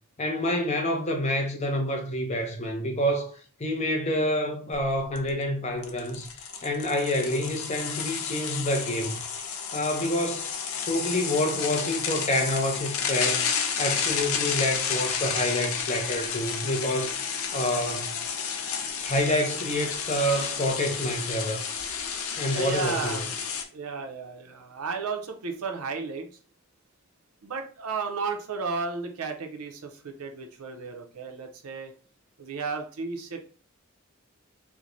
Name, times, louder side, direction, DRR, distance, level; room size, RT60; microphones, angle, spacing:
voice 1, 0.2-3.3 3.6-6.3 6.6-9.2 9.7-10.5 10.9-13.5 13.8-17.2 17.5-18.2 19.0-21.6 22.4-23.2, left 1 dB, 30° left, 0.6 m, -27 dB
sound 1, 4.7-4.8 5.2-5.3 5.8-23.6, left 6 dB, 75° left, 0.5 m, -31 dB
voice 2, 22.5-23.4 23.7-26.3 27.4-31.9 32.4-33.4, right 4 dB, 85° right, 0.6 m, -33 dB
4.5 x 2.1 x 2.6 m
head